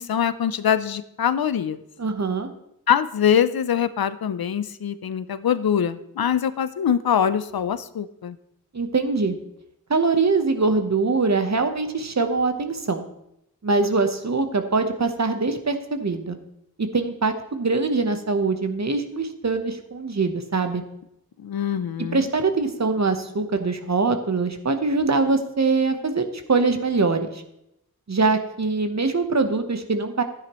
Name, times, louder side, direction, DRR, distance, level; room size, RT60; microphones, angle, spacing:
voice 1, 0.0-1.8 2.9-8.4 21.4-22.3, left 8 dB, 75° left, 14 dB, 0.5 m, -23 dB
voice 2, 2.0-2.5 8.7-9.4 9.9-13.0 13.6-16.4 16.8-20.8 22.0-27.3 28.1-30.2, right 3 dB, 45° right, 7 dB, 1.0 m, -23 dB
12.0 x 9.7 x 3.1 m, 0.81 s
wide cardioid pair, 50°, 37 cm